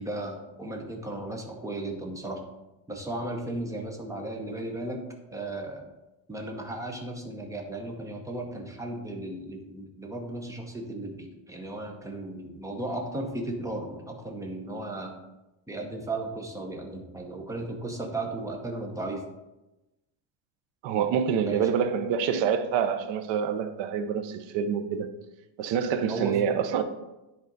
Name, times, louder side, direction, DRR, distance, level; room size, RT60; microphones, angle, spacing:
voice 1, 0.0-2.4 2.9-5.0 5.3-5.9 6.3-15.2 15.7-19.2 21.3-21.8 26.1-26.4, right 2 dB, 5° right, 0.7 m, -35 dB
voice 2, 20.8-25.1 25.6-26.8, right 7 dB, 65° right, 0.8 m, -26 dB
10.0 x 3.9 x 4.0 m
cardioid pair, 165°, 48 cm